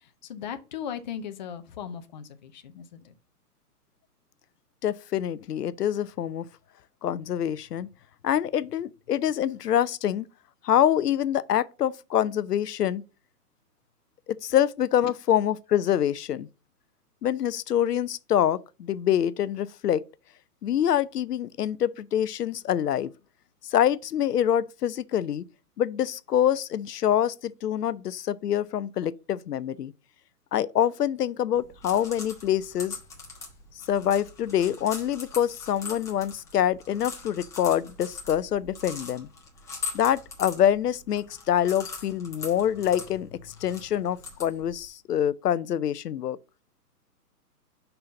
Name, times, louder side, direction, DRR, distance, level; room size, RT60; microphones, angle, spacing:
voice 1, 0.0-3.1, left 8 dB, 30° left, 0.5 m, -38 dB
voice 2, 4.8-6.5 7.0-7.9 8.2-10.3 10.6-13.0 14.3-16.5 17.2-20.0 20.6-23.1 23.6-25.4 25.8-29.9 30.5-33.0 33.9-39.3 39.9-46.4, left 10 dB, 75° left, 0.6 m, -25 dB
sound 1, 31.5-44.9, left 4 dB, 5° left, 1.0 m, -41 dB
5.5 x 4.0 x 5.5 m
figure-of-eight pair, 130°, 48 cm